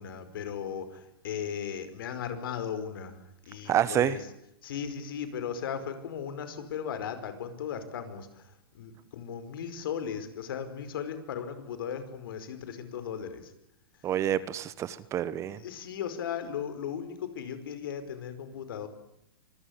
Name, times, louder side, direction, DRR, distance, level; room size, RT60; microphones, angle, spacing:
voice 1, 0.0-3.2 3.5-4.2 4.6-13.5 14.0-14.1 15.6-18.9, left 8 dB, 65° left, 11 dB, 5.1 m, -37 dB
voice 2, 3.7-4.2 14.0-15.6, right 11 dB, 25° right, 17 dB, 1.1 m, -28 dB
25.0 x 20.5 x 8.7 m, 0.79 s
hypercardioid pair, 140°, 12 cm